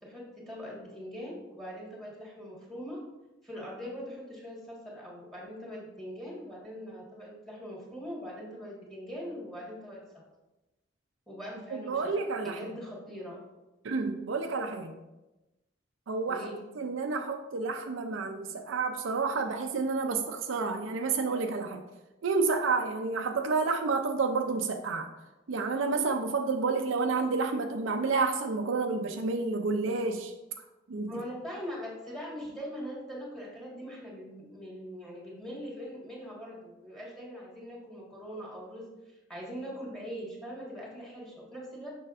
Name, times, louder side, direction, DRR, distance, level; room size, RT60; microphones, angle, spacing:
voice 1, 0.0-3.0 3.4-10.0 11.3-12.1 12.4-13.4 16.3-16.6 31.1-41.9, equal, ahead, -4 dB, 1.7 m, -42 dB
voice 2, 11.7-12.7 13.8-15.0 16.1-16.5 16.8-21.8 22.2-25.1 25.5-30.3 30.9-31.2, right 4 dB, 70° right, 5 dB, 0.5 m, -30 dB
6.5 x 5.7 x 2.5 m, 1.0 s
head